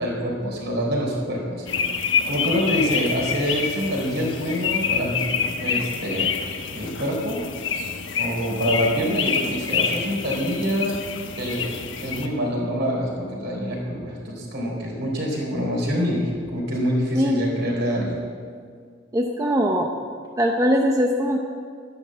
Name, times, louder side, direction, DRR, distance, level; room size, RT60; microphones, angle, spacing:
voice 1, 0.0-1.7 2.0-6.3 6.7-7.4 8.2-11.0 11.4-18.2, equal, 55° right, -2 dB, 3.8 m, -26 dB
sound 1, 1.7-12.3, left 6 dB, 65° left, 1.1 m, -27 dB
voice 2, 19.1-19.9 20.4-21.4, equal, 15° right, 1 dB, 0.7 m, -21 dB
12.0 x 10.5 x 7.4 m, 2.1 s
head